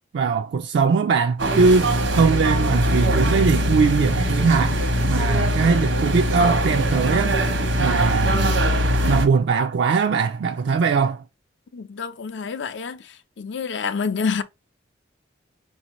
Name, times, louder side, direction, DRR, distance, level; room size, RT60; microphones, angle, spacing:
voice 1, 0.1-4.8 5.1-7.4 7.8-8.5 9.1-11.2, right 5 dB, 65° right, 0.3 m, -20 dB
sound 1, 1.4-9.3, equal, 85° right, 1.0 m, -21 dB
voice 2, 11.7-13.0 13.4-14.4, left 5 dB, 75° left, 0.5 m, -27 dB
4.3 x 2.7 x 2.9 m
head